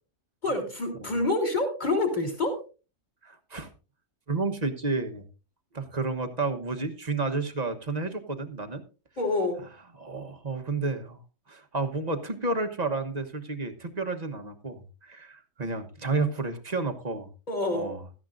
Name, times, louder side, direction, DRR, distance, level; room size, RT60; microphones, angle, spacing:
voice 1, 0.4-2.6 9.2-9.6 17.5-17.9, left 2 dB, 30° left, 3 dB, 3.5 m, -27 dB
voice 2, 3.2-3.7 4.3-5.2 5.7-8.8 10.0-11.2 11.5-17.3 17.7-18.0, right 3 dB, 30° right, 6 dB, 1.1 m, -31 dB
16.0 x 13.5 x 2.6 m, 0.33 s
omnidirectional pair, 1.6 m